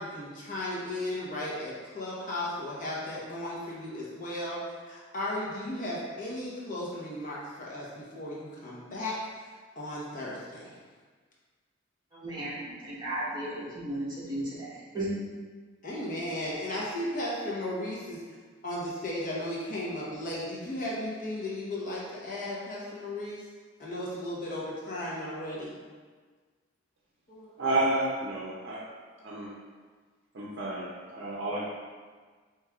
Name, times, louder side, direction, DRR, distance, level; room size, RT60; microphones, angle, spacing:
voice 1, 0.0-9.2 9.8-10.8 15.8-18.2 18.6-23.4 23.8-25.7 27.3-27.5, left 1 dB, 45° left, -6 dB, 0.9 m, -35 dB
voice 2, 12.1-15.1, right 1 dB, 20° right, -9 dB, 1.2 m, -35 dB
voice 3, 27.6-28.9 29.2-29.6 30.3-31.6, right 2 dB, 60° right, -6 dB, 0.6 m, -30 dB
4.5 x 3.1 x 2.3 m, 1.5 s
head